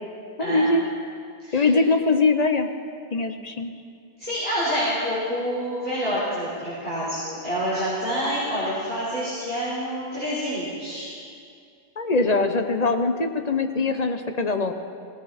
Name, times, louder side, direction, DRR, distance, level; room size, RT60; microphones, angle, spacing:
voice 1, 0.4-0.8 1.5-2.7 3.1-3.7 12.0-14.7, left 3 dB, 40° left, 7 dB, 0.9 m, -22 dB
voice 2, 1.4-1.8 4.2-11.1, equal, 10° left, -10 dB, 4.3 m, -27 dB
18.0 x 17.5 x 4.3 m, 2.3 s
omnidirectional pair, 1.0 m